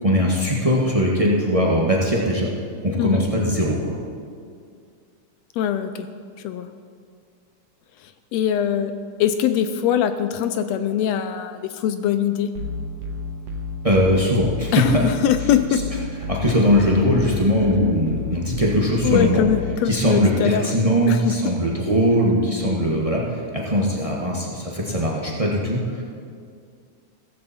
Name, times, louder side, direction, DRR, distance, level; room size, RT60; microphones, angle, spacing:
voice 1, 0.0-2.5 2.8-3.9 13.8-15.0 16.3-19.4 19.9-25.8, equal, 30° right, -3 dB, 0.6 m, -20 dB
voice 2, 5.6-6.1 6.4-6.7 8.0-8.9 9.2-12.5 14.7-15.8 19.0-20.8 21.1-21.6, left 9 dB, 80° left, 10 dB, 1.6 m, -22 dB
sound 1, 12.6-19.9, left 3 dB, 70° right, 2.5 m, -31 dB
16.0 x 14.5 x 4.3 m, 2.2 s
omnidirectional pair, 3.5 m